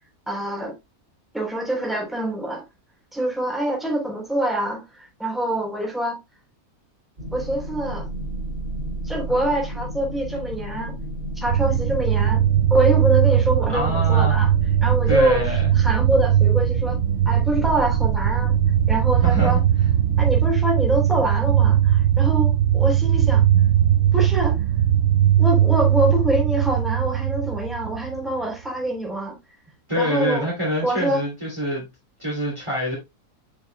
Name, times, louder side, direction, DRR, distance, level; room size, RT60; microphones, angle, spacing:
voice 1, 0.3-0.7 1.3-2.6 3.1-6.2 7.3-8.1 9.0-10.9 11.4-12.4 12.7-14.5 14.8-15.5 15.7-17.0 17.2-18.5 18.9-19.6 20.2-23.4 24.1-24.5 25.4-29.4 29.9-30.4 30.8-31.2, right 1 dB, ahead, 3.3 m, -25 dB
sound 1, 7.2-20.4, right 1 dB, 35° right, 3.7 m, -32 dB
sound 2, 11.5-28.3, right 11 dB, 70° right, 0.9 m, -19 dB
voice 2, 13.7-14.4 15.1-15.7 19.2-19.6 23.5-23.7 29.9-31.9 32.2-33.0, equal, 20° right, 2.7 m, -25 dB
8.1 x 6.8 x 2.2 m
omnidirectional pair, 1.6 m